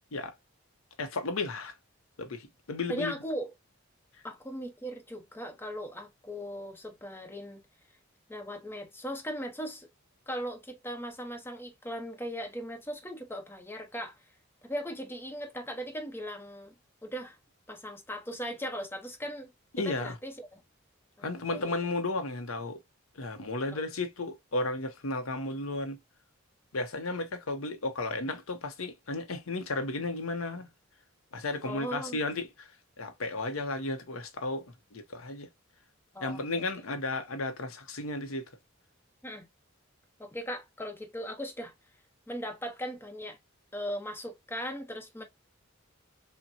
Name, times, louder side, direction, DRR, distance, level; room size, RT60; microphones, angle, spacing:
voice 1, 1.0-1.7 2.2-3.1 19.8-20.2 21.2-22.8 23.1-26.0 26.7-30.7 31.3-32.7 33.0-35.5 36.2-38.5, left 2 dB, 85° left, 0.8 m, -34 dB
voice 2, 2.9-3.5 4.2-7.6 8.3-9.9 10.3-14.1 14.6-16.7 17.0-17.4 17.7-19.5 19.8-20.6 21.2-21.8 23.6-23.8 31.6-32.2 36.1-36.4 39.2-39.5 40.2-41.7 42.3-43.4 43.7-45.2, equal, 10° left, 0.9 m, -38 dB
5.6 x 2.2 x 2.7 m
head